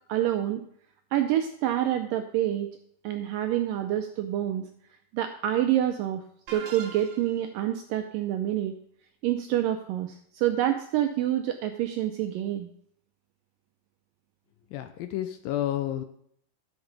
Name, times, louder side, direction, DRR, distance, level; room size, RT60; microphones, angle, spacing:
voice 1, 0.1-0.6 1.1-2.7 3.0-4.7 5.1-8.7 9.2-12.7, right 12 dB, 80° right, 7 dB, 2.0 m, -27 dB
sound 1, 6.5-7.5, right 6 dB, 60° right, 2.2 m, -42 dB
voice 2, 14.7-16.0, left 12 dB, 80° left, 8 dB, 2.2 m, -30 dB
10.5 x 8.0 x 5.2 m, 0.66 s
omnidirectional pair, 4.6 m